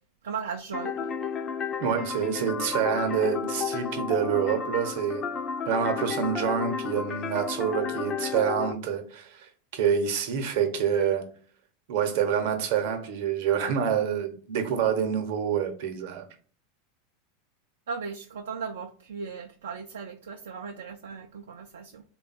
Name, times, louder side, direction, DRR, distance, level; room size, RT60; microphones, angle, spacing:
voice 1, 0.2-1.1 17.9-22.0, right 6 dB, 80° right, 0.3 m, -37 dB
sound 1, 0.7-8.7, left 6 dB, 35° left, 0.4 m, -32 dB
voice 2, 1.8-5.2 5.7-11.2 11.9-16.2, right 8 dB, 65° right, 0.7 m, -27 dB
3.3 x 2.2 x 4.0 m
hypercardioid pair, 90°, 0 cm